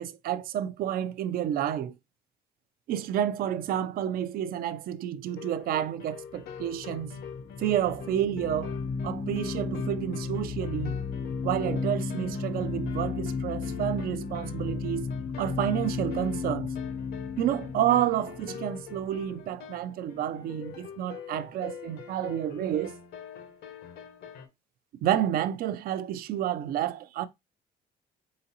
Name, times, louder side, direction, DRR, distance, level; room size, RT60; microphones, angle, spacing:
voice 1, 0.0-1.9 2.9-7.1 7.6-8.7 9.0-11.0 11.4-15.1 15.4-16.7 17.4-22.9 25.0-27.3, right 11 dB, 60° right, 0.4 m, -30 dB
sound 1, 5.3-24.5, left 7 dB, 75° left, 0.9 m, -45 dB
sound 2, 6.4-19.6, left 5 dB, 50° left, 0.6 m, -34 dB
3.9 x 3.8 x 2.8 m
cardioid pair, 110°, 17 cm